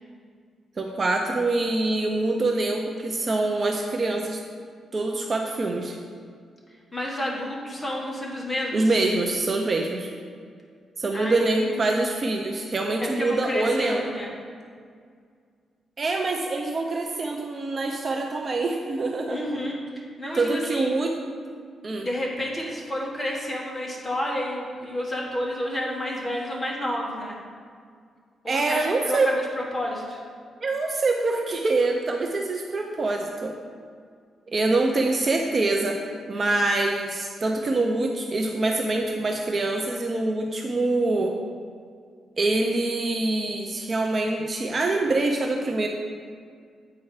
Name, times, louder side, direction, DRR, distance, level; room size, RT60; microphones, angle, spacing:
voice 1, 0.8-4.4 4.9-6.0 8.7-10.1 11.0-14.0 16.0-19.4 20.3-21.2 21.8-22.1 28.5-29.3 30.6-33.6 34.5-36.0 36.3-41.3 42.4-45.9, right 2 dB, 30° right, 2 dB, 0.5 m, -25 dB
voice 2, 6.9-8.8 11.1-12.0 13.2-14.3 19.3-19.7 20.2-20.9 22.0-27.4 28.4-30.2, left 1 dB, 15° left, -3 dB, 1.4 m, -30 dB
8.4 x 4.8 x 4.7 m, 2.1 s
wide cardioid pair, 150°, 0 cm